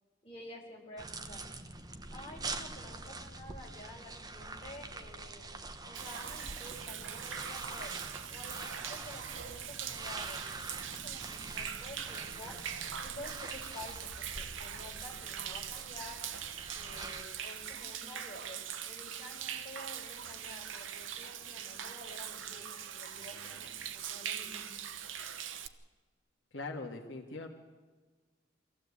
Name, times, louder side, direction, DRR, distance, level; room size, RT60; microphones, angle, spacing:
voice 1, 0.2-1.4 2.1-5.4 5.8-7.9 8.3-12.5 13.0-16.2 16.8-18.6 18.9-22.6 22.9-24.7, left 1 dB, 30° left, -2 dB, 4.9 m, -50 dB
sound 1, 1.0-17.2, right 3 dB, 20° right, 1.2 m, -45 dB
Human voice / Rain / Stream, 5.9-25.7, right 8 dB, 85° right, 1.1 m, -42 dB
voice 2, 26.5-27.5, left 3 dB, 70° left, 1 dB, 1.7 m, -41 dB
24.0 x 15.5 x 8.5 m, 1.4 s
head